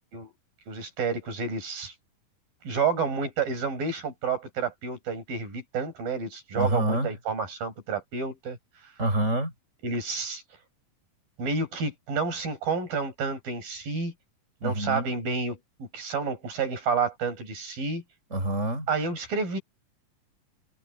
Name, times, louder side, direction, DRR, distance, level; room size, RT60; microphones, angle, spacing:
voice 1, 0.7-1.9 2.6-8.9 9.8-10.4 11.4-14.1 14.6-18.0 18.9-19.6, right 5 dB, 85° right, 7.6 m, -30 dB
voice 2, 6.5-7.1 9.0-9.5 14.6-15.1 18.3-18.9, right 1 dB, 20° right, 6.5 m, -27 dB
omnidirectional pair, 4.0 m